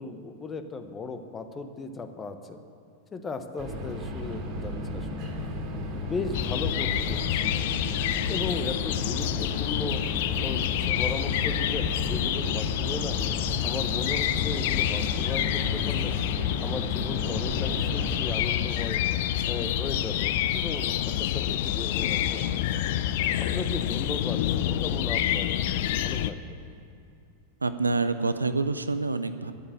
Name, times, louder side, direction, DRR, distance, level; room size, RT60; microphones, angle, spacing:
voice 1, 0.0-2.6 3.1-5.3 6.0-7.6 8.3-10.0 10.4-13.2 13.6-16.2 16.6-19.0 19.4-22.7 23.4-26.6, left 3 dB, 20° left, 7 dB, 1.1 m, -36 dB
sound 1, 3.6-18.3, left 1 dB, 35° right, 2.3 m, -34 dB
sound 2, 6.3-26.3, left 12 dB, 50° left, 0.5 m, -28 dB
voice 2, 27.6-29.5, right 3 dB, 80° right, 11 dB, 0.6 m, -27 dB
11.5 x 8.4 x 9.1 m, 2.6 s
figure-of-eight pair, 90°, 0 cm